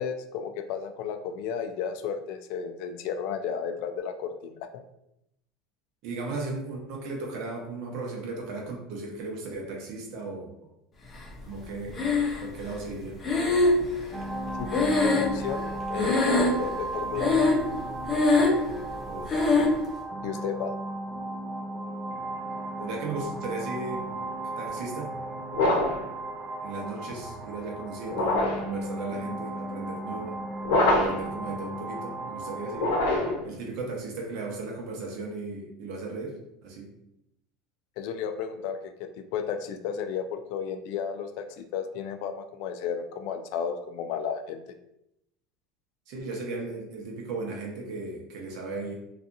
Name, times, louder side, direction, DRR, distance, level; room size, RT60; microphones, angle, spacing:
voice 1, 0.0-4.6 14.6-17.4 20.2-20.8 38.0-44.6, left 7 dB, 65° left, 8 dB, 0.3 m, -33 dB
voice 2, 6.0-10.5 11.4-12.0 12.4-13.1 19.1-19.4 22.8-24.1 24.4-25.1 26.6-30.4 30.9-33.0 33.4-36.9 46.1-48.9, right 3 dB, 65° right, 0 dB, 0.7 m, -36 dB
Breathing, 11.9-12.7 13.2-15.7 16.0-16.8 17.2-17.8 18.0-18.7 19.3-19.8, left 3 dB, 25° left, 0.6 m, -23 dB
sound 1, 14.1-33.3, right 2 dB, 20° right, 0.4 m, -35 dB
sound 2, 25.5-26.1 28.1-28.7 30.6-31.3 32.7-33.5, left 2 dB, 85° left, 0.7 m, -24 dB
2.6 x 2.4 x 2.5 m, 0.81 s
supercardioid pair, 125°, 0 cm